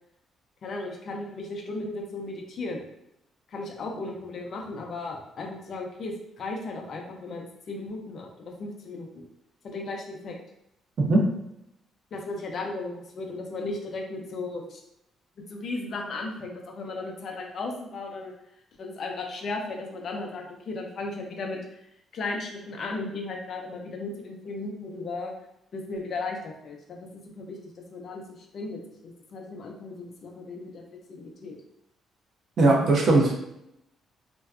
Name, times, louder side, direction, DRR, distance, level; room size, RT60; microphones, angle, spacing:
voice 1, 0.6-2.9 3.5-9.3 9.6-10.3 12.1-14.8 15.5-18.3 18.8-21.8 22.1-25.3 25.7-27.6 27.9-31.6, left 3 dB, 60° left, 1 dB, 0.5 m, -36 dB
voice 2, 11.0-11.3 32.6-33.4, right 2 dB, 60° right, 0 dB, 0.6 m, -20 dB
2.5 x 2.2 x 2.3 m, 0.81 s
cardioid pair, 75°, 0 cm